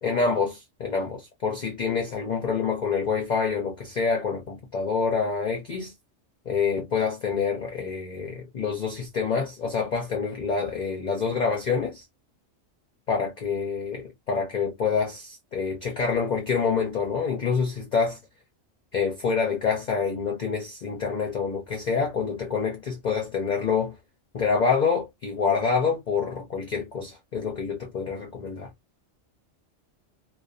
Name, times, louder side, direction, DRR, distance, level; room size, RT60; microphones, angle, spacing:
voice 1, 0.0-5.9 6.5-12.0 13.1-14.0 14.3-18.2 18.9-24.0 24.3-28.7, left 5 dB, 50° left, 0.5 m, -27 dB
2.4 x 2.2 x 2.4 m
omnidirectional pair, 1.3 m